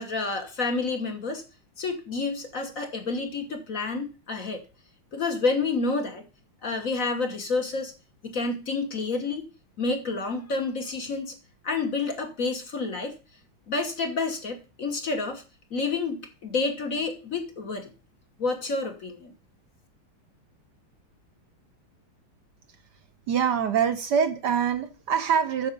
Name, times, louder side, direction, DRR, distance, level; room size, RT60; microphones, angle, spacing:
voice 1, 0.0-1.4 1.8-4.6 5.1-6.2 6.6-7.9 8.2-9.5 9.8-11.4 11.6-13.2 13.7-15.4 15.7-17.9 18.4-19.3, left 3 dB, 45° left, 5 dB, 1.5 m, -29 dB
voice 2, 23.3-25.7, right 7 dB, 65° right, 8 dB, 1.3 m, -24 dB
8.6 x 6.3 x 5.1 m, 0.33 s
omnidirectional pair, 2.2 m